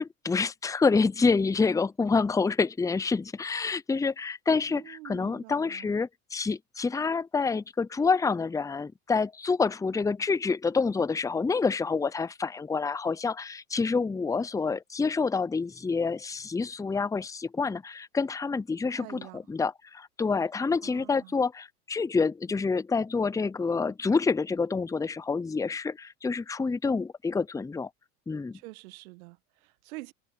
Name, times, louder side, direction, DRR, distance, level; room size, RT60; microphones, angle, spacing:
voice 1, 0.0-27.9 28.3-28.6, left 4 dB, 5° left, 0.7 m, -27 dB
voice 2, 4.7-5.9 18.8-19.4 20.8-21.4 28.5-30.1, right 21 dB, 70° right, 1.4 m, -46 dB
hypercardioid pair, 95°, 44 cm